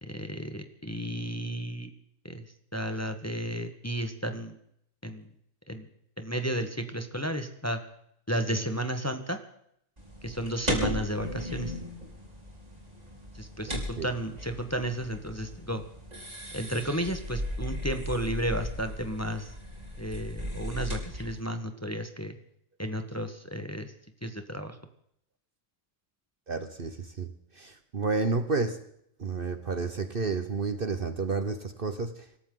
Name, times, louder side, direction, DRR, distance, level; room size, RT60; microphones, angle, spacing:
voice 1, 0.0-1.9 2.2-2.4 2.7-4.5 5.0-5.3 5.7-5.9 6.2-7.8 8.3-9.4 10.2-11.8 13.3-15.8 16.5-19.5 20.0-22.4 22.8-23.9 24.2-24.8, equal, 10° left, 7 dB, 1.3 m, -33 dB
sound 1, 10.0-21.4, equal, 30° right, 3.9 m, -37 dB
voice 2, 13.7-14.1 26.5-28.8 29.2-32.3, right 4 dB, 45° right, 9 dB, 1.2 m, -31 dB
25.5 x 14.0 x 3.9 m, 0.71 s
omnidirectional pair, 1.4 m